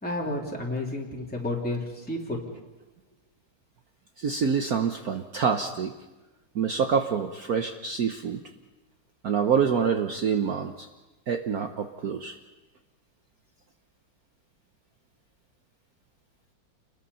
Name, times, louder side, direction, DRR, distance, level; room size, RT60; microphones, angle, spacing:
voice 1, 0.0-2.4, left 1 dB, 5° left, -3 dB, 3.3 m, -31 dB
voice 2, 4.2-5.9 6.5-8.4 9.2-10.9 11.3-12.4, right 6 dB, 55° right, 5 dB, 1.3 m, -26 dB
28.5 x 21.0 x 5.6 m, 1.1 s
omnidirectional pair, 2.2 m